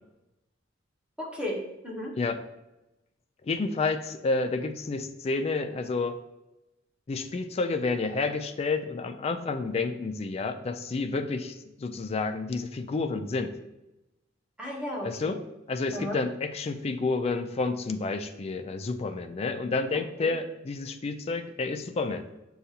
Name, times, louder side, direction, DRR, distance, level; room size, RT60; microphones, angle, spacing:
voice 1, 1.2-2.1 14.6-15.4 15.9-16.2 20.2-20.3, left 1 dB, 5° right, -3 dB, 0.9 m, -34 dB
voice 2, 3.4-6.2 7.1-13.5 15.0-22.3, left 3 dB, 35° left, 8 dB, 0.3 m, -30 dB
6.5 x 2.4 x 2.8 m, 0.96 s
head